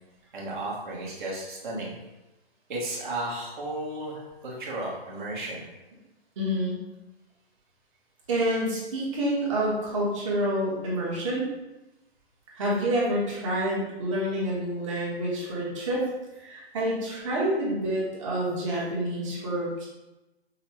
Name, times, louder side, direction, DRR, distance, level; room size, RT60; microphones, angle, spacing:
voice 1, 0.3-1.9 2.7-5.6, right 1 dB, 50° right, -4 dB, 1.2 m, -34 dB
voice 2, 6.4-6.8 8.3-11.4 12.5-16.0 16.4-19.9, right 1 dB, 30° right, -5 dB, 1.1 m, -28 dB
5.4 x 2.1 x 3.0 m, 1.0 s
hypercardioid pair, 160°, 31 cm